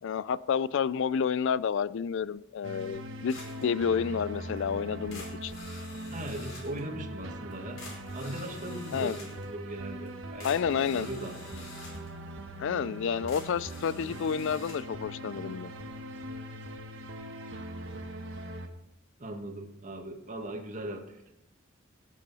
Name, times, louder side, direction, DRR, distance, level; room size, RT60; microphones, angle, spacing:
voice 1, 0.0-5.5 8.9-9.2 10.4-11.1 12.6-15.7, left 7 dB, 65° left, 19 dB, 0.4 m, -30 dB
sound 1, 2.6-18.7, right 1 dB, 70° right, 1.4 m, -41 dB
sound 2, 3.3-3.7 4.1-4.2 4.6-4.7 5.1-6.8 7.5-7.6 7.8-9.5 10.1-10.2 10.4-12.1 13.1-14.8, left 3 dB, 90° left, 4.7 m, -48 dB
voice 2, 6.1-7.8 8.1-10.6 11.0-11.7 19.2-21.3, right 1 dB, 40° right, 4 dB, 1.7 m, -39 dB
17.0 x 8.3 x 4.1 m, 0.80 s
head